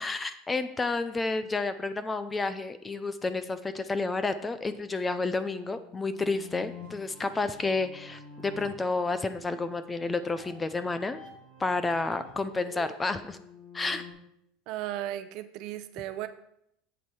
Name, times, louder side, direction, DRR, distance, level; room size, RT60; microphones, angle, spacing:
voice 1, 0.0-11.2 11.6-13.4 13.7-14.0, left 3 dB, 15° left, 12 dB, 0.4 m, -30 dB
sound 1, 5.4-14.1, left 3 dB, 70° left, 3.9 m, -49 dB
voice 2, 14.7-16.3, right 13 dB, 50° right, 11 dB, 0.7 m, -35 dB
8.2 x 7.3 x 4.6 m, 0.75 s
supercardioid pair, 150°, 0 cm